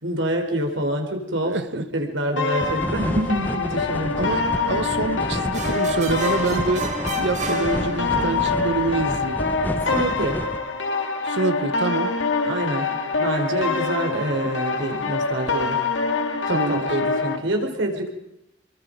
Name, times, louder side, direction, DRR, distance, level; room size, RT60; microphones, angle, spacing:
voice 1, 0.0-4.3 4.7-4.8 9.9-10.4 12.4-12.9 13.2-15.8 16.5-18.1, right 1 dB, 85° right, 4.0 m, -26 dB
voice 2, 1.4-1.8 4.2-9.4 11.2-12.2 16.5-16.9, right 3 dB, 65° right, 1.1 m, -26 dB
sound 1, 2.4-17.4, left 4 dB, 85° left, 2.2 m, -25 dB
sound 2, 2.6-10.6, equal, 10° left, 1.1 m, -31 dB
sound 3, 5.5-8.5, right 3 dB, 40° right, 2.3 m, -31 dB
28.0 x 23.0 x 5.2 m
head